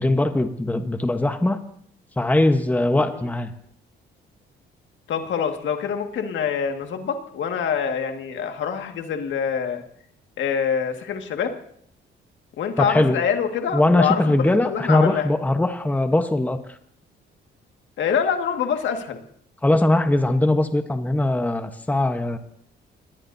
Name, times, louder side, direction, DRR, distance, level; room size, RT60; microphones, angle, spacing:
voice 1, 0.0-1.6 2.2-3.5 12.8-13.2 13.7-16.6 19.6-22.4, left 1 dB, 10° left, 7 dB, 1.1 m, -20 dB
voice 2, 5.1-9.8 10.4-11.5 12.6-15.3 18.0-19.2, left 7 dB, 70° left, 5 dB, 1.9 m, -25 dB
26.5 x 19.0 x 2.7 m, 0.64 s
cardioid pair, 90°, 20 cm